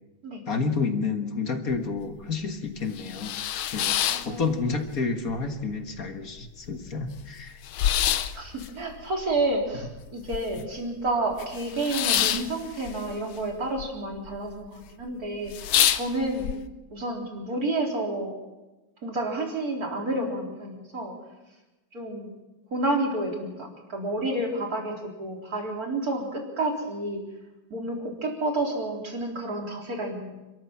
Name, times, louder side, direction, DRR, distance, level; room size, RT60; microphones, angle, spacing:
voice 1, 0.5-4.0 4.3-7.6, left 4 dB, 45° left, 6 dB, 2.0 m, -30 dB
sound 1, 1.7-1.8 2.2-2.3 2.8-5.0 5.3-6.0 6.4-6.5 6.6-10.8 11.1-13.9 14.1-14.7 15.1-15.2 15.5-16.5, left 11 dB, 85° left, 1.7 m, -27 dB
voice 2, 4.1-4.4 8.3-16.5 16.9-18.4 19.0-21.1 21.9-22.3 22.7-27.2 27.7-30.3, right 2 dB, 45° right, 0 dB, 4.3 m, -30 dB
28.5 x 13.5 x 7.4 m, 1.1 s
omnidirectional pair, 2.2 m